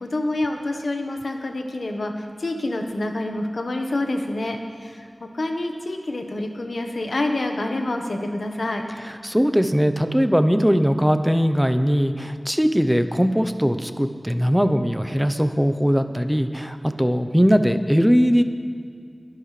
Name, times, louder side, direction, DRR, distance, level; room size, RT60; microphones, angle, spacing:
voice 1, 0.0-2.1 2.4-5.1 5.3-8.8, left 2 dB, 80° left, 3 dB, 1.2 m, -27 dB
voice 2, 9.0-18.4, equal, 5° right, 9 dB, 0.8 m, -20 dB
21.5 x 11.0 x 3.3 m, 2.1 s
wide cardioid pair, 65°, 0 cm